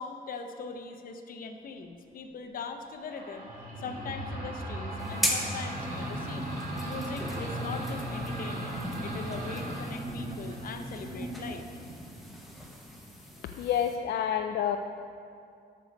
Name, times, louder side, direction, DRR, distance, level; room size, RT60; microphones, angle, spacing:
voice 1, 0.0-3.5 3.8-6.5 6.8-11.6, left 5 dB, 55° left, 6 dB, 0.8 m, -41 dB
sound 1, 3.0-12.3, right 1 dB, 55° right, 2.5 m, -37 dB
sound 2, 5.0-14.0, equal, ahead, 1.2 m, -39 dB
voice 2, 13.6-14.8, left 9 dB, 80° left, 5 dB, 0.4 m, -28 dB
12.0 x 6.5 x 5.2 m, 2.4 s
wide cardioid pair, 170°, 18 cm